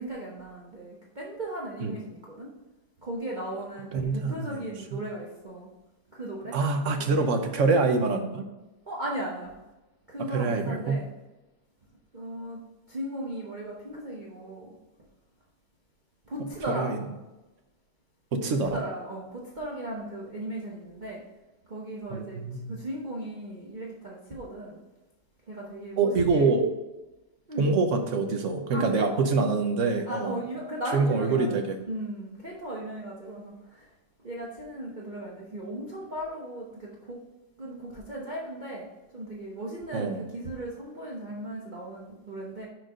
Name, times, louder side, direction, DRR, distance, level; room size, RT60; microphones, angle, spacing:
voice 1, 0.0-2.5 3.0-5.7 6.1-6.6 7.0-7.2 8.9-9.5 10.1-11.1 12.1-14.8 16.2-16.9 18.4-21.2 21.7-24.8 25.5-26.5 27.5-27.7 28.7-29.1 30.0-31.6 31.9-33.9 34.2-37.2 37.6-42.7, right 1 dB, 35° right, -5 dB, 1.0 m, -37 dB
voice 2, 3.9-4.6 6.5-8.4 10.3-11.0 16.8-17.0 18.3-18.8 22.1-22.7 26.0-26.7 27.6-30.4 30.9-31.8 39.9-40.3, right 4 dB, 55° right, 5 dB, 1.0 m, -25 dB
6.2 x 4.5 x 5.0 m, 1.1 s
omnidirectional pair, 1.7 m